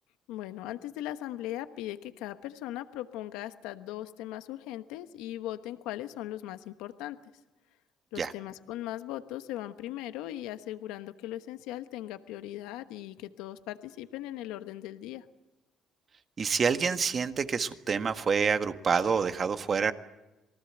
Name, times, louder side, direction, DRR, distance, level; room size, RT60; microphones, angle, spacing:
voice 1, 0.3-7.2 8.1-15.2, left 14 dB, 85° left, 10 dB, 1.1 m, -39 dB
voice 2, 16.4-19.9, right 6 dB, 45° right, 8 dB, 1.7 m, -27 dB
27.0 x 19.5 x 8.0 m, 1.1 s
supercardioid pair, 70°, 0 cm